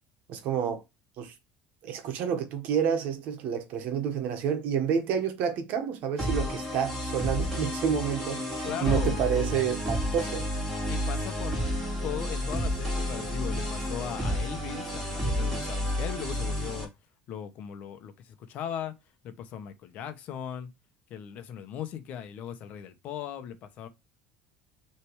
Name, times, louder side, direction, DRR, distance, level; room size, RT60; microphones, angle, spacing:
voice 1, 0.3-0.8 1.2-1.3 1.8-10.5, right 8 dB, 50° right, 1.5 m, -29 dB
sound 1, 6.2-16.8, equal, ahead, 3.1 m, -31 dB
voice 2, 8.6-9.1 10.8-11.6 12.0-16.9 17.3-18.9 19.2-20.7 21.1-23.9, left 9 dB, 45° left, 1.1 m, -38 dB
6.6 x 3.4 x 4.8 m
cardioid pair, 155°, 3 cm